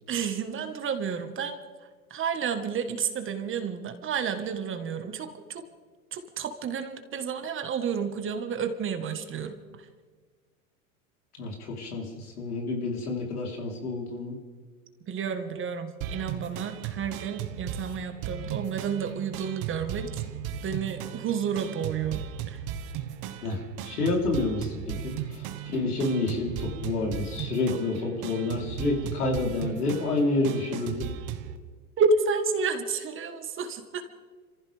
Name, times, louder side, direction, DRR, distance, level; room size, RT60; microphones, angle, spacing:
voice 1, 0.1-1.6 2.1-5.6 6.1-9.6 15.1-20.2 20.6-22.6 32.0-34.0, right 5 dB, 30° right, 8 dB, 1.6 m, -30 dB
voice 2, 11.4-14.4 23.4-31.1, left 2 dB, 90° left, 0 dB, 4.0 m, -29 dB
sound 1, 16.0-31.6, right 9 dB, 45° right, 1.3 m, -36 dB
27.0 x 15.0 x 3.5 m, 1.5 s
hypercardioid pair, 110°, 44 cm